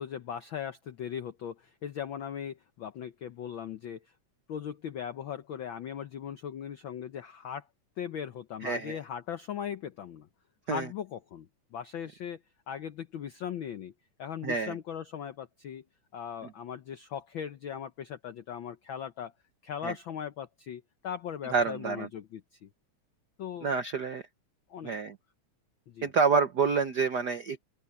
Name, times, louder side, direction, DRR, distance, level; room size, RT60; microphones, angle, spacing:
voice 1, 0.0-4.1 4.5-7.7 8.0-10.3 10.7-12.4 12.7-13.9 14.2-15.8 16.1-19.3 19.6-22.7 23.4-23.7 24.7-24.9 25.9-26.1, left 8 dB, 85° left, 1.1 m, -39 dB
voice 2, 8.6-9.0 10.7-10.9 14.4-14.7 19.8-19.9 21.5-22.1 23.6-24.2 24.8-25.2 26.0-27.7, right 5 dB, 80° right, 0.9 m, -28 dB
open air
omnidirectional pair, 3.4 m